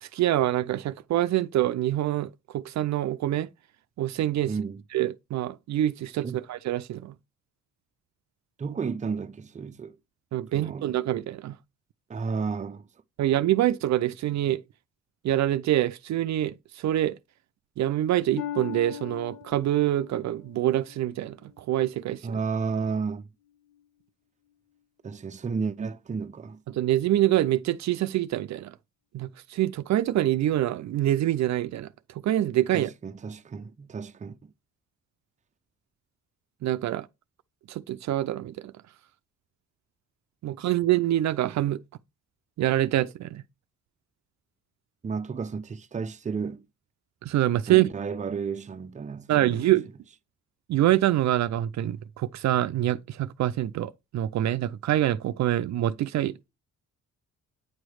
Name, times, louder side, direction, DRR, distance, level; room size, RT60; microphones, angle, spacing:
voice 1, 0.0-3.5 4.0-4.5 4.9-7.1 10.3-11.6 13.2-14.6 15.2-17.2 17.8-22.4 26.7-28.7 29.1-32.9 36.6-37.1 37.7-38.7 40.4-41.8 42.6-43.4 47.2-47.9 49.3-49.9 50.7-56.5, right 13 dB, 65° right, 0.6 m, -25 dB
voice 2, 4.4-4.8 6.2-6.4 8.6-10.0 10.5-10.9 12.1-12.9 22.2-23.3 25.0-26.6 32.7-34.4 45.0-46.7 47.7-49.5, right 5 dB, 25° right, 0.6 m, -32 dB
Harp, 18.4-22.1 22.7-23.1 23.7-23.8, left 11 dB, 80° left, 1.0 m, -40 dB
9.4 x 3.2 x 6.3 m
cardioid pair, 90°, 30 cm